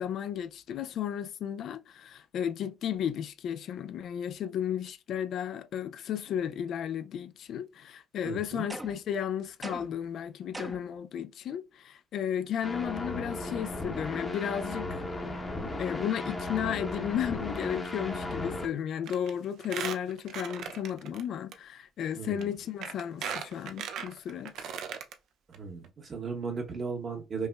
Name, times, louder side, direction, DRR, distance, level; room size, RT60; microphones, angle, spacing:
voice 1, 0.0-15.0 15.8-24.7, left 9 dB, 65° left, 0.3 m, -34 dB
voice 2, 8.2-8.7 22.1-22.5 25.5-27.5, right 5 dB, 40° right, 0.9 m, -36 dB
sound 1, 8.7-9.1 9.6-10.1 10.5-11.0, right 2 dB, 15° right, 0.4 m, -41 dB
sound 2, 12.6-18.7, left 2 dB, 15° left, 0.8 m, -35 dB
Squeak, 19.1-19.3 19.6-21.2 21.5-21.6 22.4-22.5 22.8-25.1 25.5-25.6 25.8-25.9, right 7 dB, 75° right, 0.5 m, -37 dB
5.3 x 2.0 x 2.3 m
cardioid pair, 105°, 0 cm